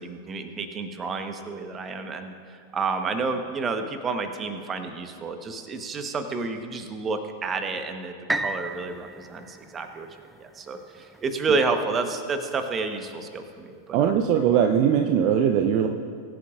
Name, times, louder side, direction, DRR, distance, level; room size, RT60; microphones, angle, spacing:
voice 1, 0.0-2.3 2.7-10.1 10.4-14.1, right 4 dB, 25° right, 7 dB, 1.1 m, -30 dB
sound 1, 8.3-12.2 12.8-12.9, right 2 dB, 5° right, 0.4 m, -34 dB
voice 2, 13.9-15.9, right 8 dB, 45° right, 4 dB, 0.7 m, -20 dB
22.0 x 11.0 x 2.5 m, 2.4 s
figure-of-eight pair, 90°, 0 cm